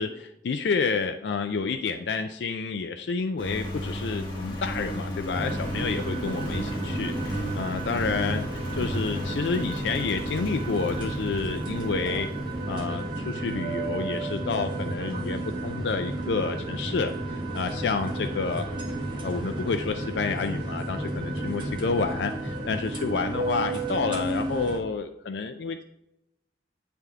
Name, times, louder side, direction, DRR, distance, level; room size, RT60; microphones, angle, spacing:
voice 1, 0.0-12.3 12.7-18.7 19.2-25.8, left 4 dB, 75° left, 7 dB, 0.4 m, -29 dB
Engine, 3.4-12.8, equal, 25° left, 1.3 m, -35 dB
sound 1, 5.3-24.8, right 2 dB, 30° right, 1.2 m, -32 dB
9.1 x 3.4 x 3.6 m, 0.84 s
head